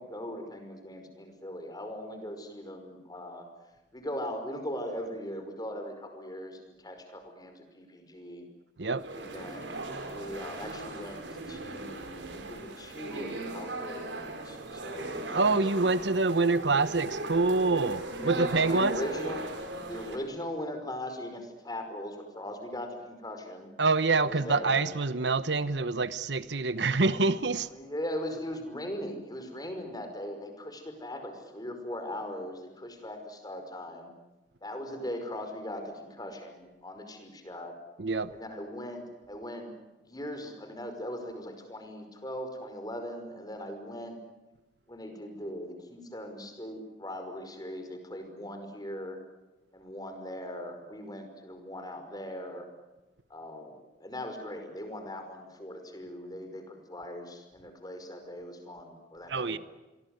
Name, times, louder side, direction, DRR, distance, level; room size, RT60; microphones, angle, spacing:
voice 1, 0.0-3.5 3.9-8.4 9.1-16.0 17.7-17.8 18.2-19.4 19.8-23.7 24.2-24.8 27.7-34.1 34.6-37.7 38.3-39.7 40.0-44.2 44.9-49.2 49.7-52.7 53.3-59.6, equal, 20° left, 5.3 m, -40 dB
sound 1, 9.0-20.2, right 2 dB, 90° right, 5.0 m, -38 dB
voice 2, 15.3-19.0 23.8-27.7 38.0-38.3 59.3-59.6, right 3 dB, 70° right, 1.0 m, -26 dB
28.5 x 23.0 x 8.0 m
head